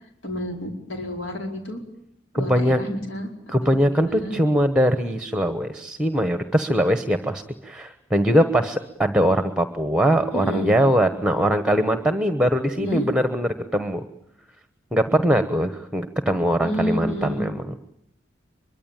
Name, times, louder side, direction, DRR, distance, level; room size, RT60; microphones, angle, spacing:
voice 1, 0.2-1.8 2.3-3.3 3.6-4.4 10.3-10.7 12.7-13.1 16.6-17.4, equal, 85° left, 2 dB, 4.9 m, -29 dB
voice 2, 2.3-2.8 3.5-14.0 14.9-17.7, equal, 5° right, 9 dB, 1.1 m, -21 dB
24.0 x 23.5 x 9.1 m, 0.77 s
head